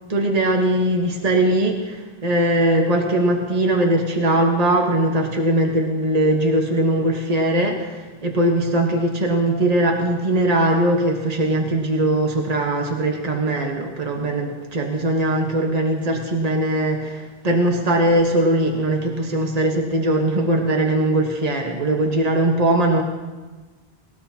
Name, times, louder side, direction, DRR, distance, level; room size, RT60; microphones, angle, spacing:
voice 1, 0.1-23.0, right 1 dB, 40° right, 1 dB, 1.5 m, -20 dB
19.5 x 19.0 x 2.9 m, 1.3 s
omnidirectional pair, 1.1 m